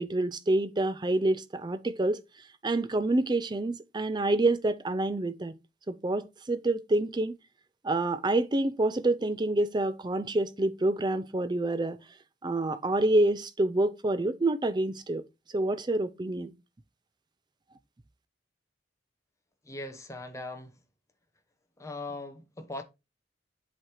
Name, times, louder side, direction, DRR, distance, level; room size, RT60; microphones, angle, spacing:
voice 1, 0.0-2.2 2.6-5.5 5.9-7.4 7.8-12.0 12.4-15.2 15.5-16.5, right 2 dB, 25° right, 0.5 m, -27 dB
voice 2, 19.6-20.7 21.8-22.8, left 2 dB, 15° left, 0.9 m, -39 dB
7.8 x 3.3 x 4.3 m
head